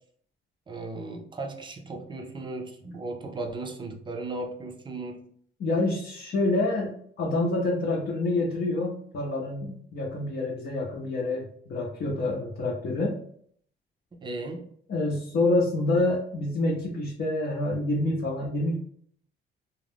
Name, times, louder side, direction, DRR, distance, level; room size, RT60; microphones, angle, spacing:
voice 1, 0.7-5.2 14.2-14.7, right 2 dB, 25° right, 3 dB, 0.5 m, -36 dB
voice 2, 5.6-13.2 14.9-18.8, left 2 dB, 55° left, -5 dB, 0.7 m, -27 dB
2.4 x 2.1 x 3.4 m, 0.63 s
cardioid pair, 90°, 20 cm